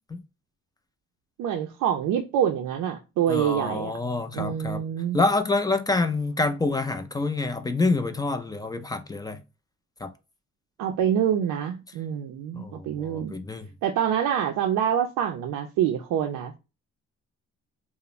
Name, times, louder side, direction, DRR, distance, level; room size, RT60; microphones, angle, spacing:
voice 1, 1.4-4.0 4.3-5.2 10.8-13.3 13.8-16.6, right 9 dB, 85° right, 0.5 m, -26 dB
voice 2, 3.3-4.8 5.1-9.4 10.0-10.1 12.5-13.7, left 3 dB, 15° left, 0.3 m, -27 dB
2.4 x 2.0 x 3.0 m
cardioid pair, 90°, 30 cm